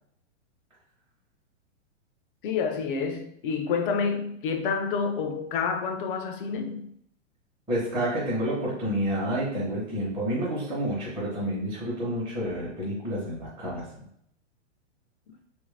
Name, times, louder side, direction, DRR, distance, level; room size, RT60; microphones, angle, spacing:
voice 1, 2.4-6.9, left 5 dB, 45° left, 5 dB, 0.6 m, -28 dB
voice 2, 7.7-13.9, right 1 dB, 15° right, -10 dB, 1.0 m, -29 dB
3.1 x 2.6 x 3.3 m, 0.69 s
hypercardioid pair, 140°, 37 cm